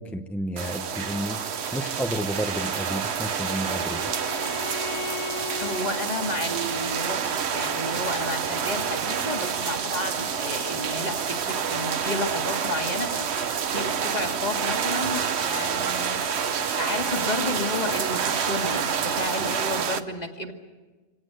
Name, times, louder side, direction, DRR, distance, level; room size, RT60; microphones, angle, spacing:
voice 1, 0.0-4.0, equal, ahead, 6 dB, 0.6 m, -31 dB
sound 1, 0.6-20.0, right 7 dB, 65° right, 1.1 m, -28 dB
Bowed string instrument, 2.4-5.9, left 4 dB, 80° left, 1.3 m, -37 dB
voice 2, 5.6-7.3 7.5-20.5, left 2 dB, 35° left, 3 dB, 2.1 m, -32 dB
26.0 x 18.0 x 7.9 m, 1.3 s
omnidirectional pair, 1.2 m